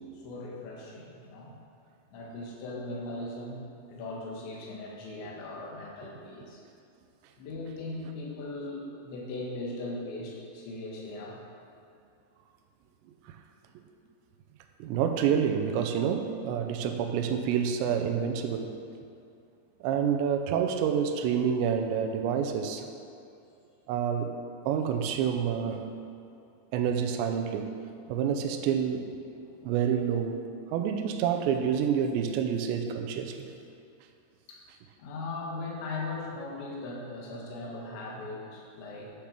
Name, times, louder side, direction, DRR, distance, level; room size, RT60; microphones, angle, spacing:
voice 1, 0.1-1.6 2.1-6.6 7.4-11.4 29.4-29.5 34.5-34.6 35.0-39.1, left 2 dB, 80° left, -3 dB, 3.9 m, -39 dB
voice 2, 14.8-18.8 19.8-22.9 23.9-24.3 24.7-25.9 26.7-27.7 28.1-29.1 29.6-33.5, right 7 dB, 85° right, 5 dB, 2.9 m, -28 dB
11.5 x 6.8 x 6.5 m, 2.5 s
omnidirectional pair, 5.2 m